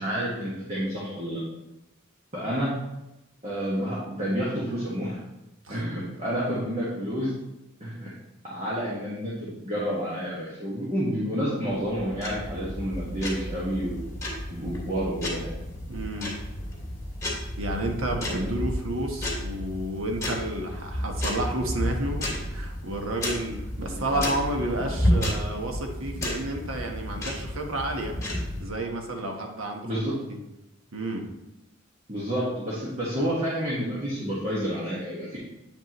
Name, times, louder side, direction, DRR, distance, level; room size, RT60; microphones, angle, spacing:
voice 1, 0.0-1.4 2.3-2.7 3.4-5.2 5.7-7.3 7.8-8.1 8.4-14.1 14.5-15.5 18.3-18.5 23.8-24.2 29.8-30.1 32.1-35.4, equal, 35° right, -7 dB, 1.5 m, -29 dB
sound 1, 11.7-28.6, left 1 dB, 15° left, 2.5 m, -32 dB
voice 2, 15.9-16.3 17.6-28.2 28.6-30.0 30.3-30.4 30.9-31.3, right 1 dB, 90° right, 3 dB, 1.1 m, -31 dB
9.0 x 5.5 x 3.0 m, 0.95 s
head